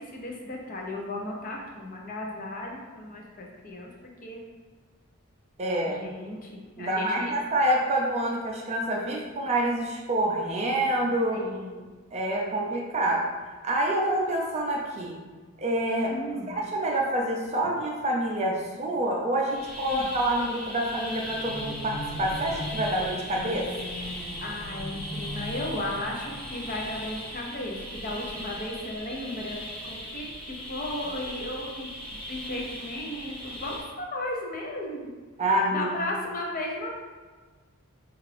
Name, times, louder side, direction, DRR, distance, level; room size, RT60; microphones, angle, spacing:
voice 1, 0.0-3.9 4.2-4.4 5.8-7.3 11.3-11.9 16.1-16.6 19.9-20.1 24.4-31.9 32.3-35.0 35.7-36.9, left 1 dB, 40° left, -1 dB, 0.6 m, -35 dB
voice 2, 5.6-6.0 6.8-11.4 12.1-13.3 13.6-15.2 15.6-16.1 16.5-23.7 35.4-35.9, right 1 dB, 30° right, -1 dB, 0.4 m, -27 dB
sound 1, 19.5-33.8, equal, 25° left, 1.2 m, -39 dB
sound 2, 21.1-28.0, equal, 5° left, 0.7 m, -40 dB
5.7 x 2.4 x 3.3 m, 1.4 s
head